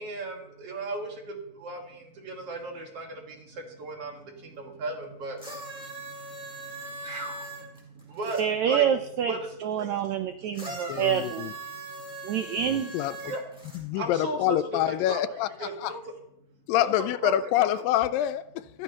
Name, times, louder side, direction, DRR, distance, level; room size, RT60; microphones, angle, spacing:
voice 1, 0.0-8.9 9.2-10.0 10.5-10.6 11.7-12.3 13.2-14.6 14.9-16.0 16.7-17.3 17.7-17.8, right 2 dB, 50° right, 2.3 m, -37 dB
sound 1, 5.4-8.4 10.5-13.8 14.7-14.8, right 2 dB, ahead, 4.2 m, -40 dB
voice 2, 8.4-11.5 12.2-12.9, right 8 dB, 80° right, 1.6 m, -27 dB
voice 3, 10.9-11.5 12.9-13.3 13.7-15.9 16.7-18.8, left 12 dB, 85° left, 2.2 m, -26 dB
15.5 x 13.5 x 2.9 m
omnidirectional pair, 4.0 m